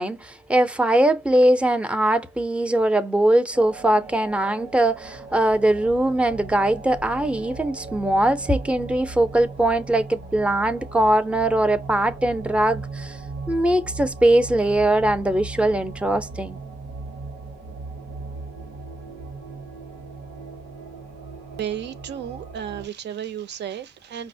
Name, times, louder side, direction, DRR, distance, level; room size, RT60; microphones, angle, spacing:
voice 1, 0.0-13.2 13.5-16.6, right 1 dB, 5° right, 0.5 m, -21 dB
sound 1, 3.5-22.9, right 3 dB, 90° right, 0.9 m, -38 dB
voice 2, 21.6-24.3, right 9 dB, 60° right, 0.5 m, -33 dB
5.1 x 2.0 x 2.6 m
cardioid pair, 90°, 20 cm